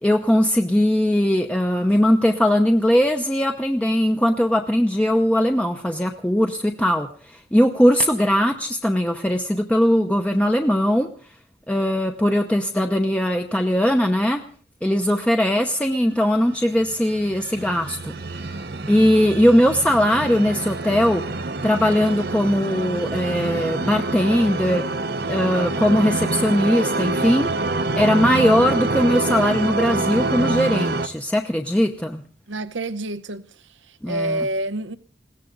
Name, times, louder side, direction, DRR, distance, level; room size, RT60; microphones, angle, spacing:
voice 1, 0.0-11.1 11.7-14.4 14.8-18.5 18.9-21.3 21.6-24.8 25.3-27.5 27.9-32.2 34.0-34.4, equal, 5° left, 0.8 m, -20 dB
sound 1, 16.7-31.1, right 2 dB, 55° right, 0.9 m, -26 dB
voice 2, 32.5-33.4 33.9-35.0, right 1 dB, 90° right, 0.9 m, -27 dB
21.0 x 17.0 x 3.9 m
head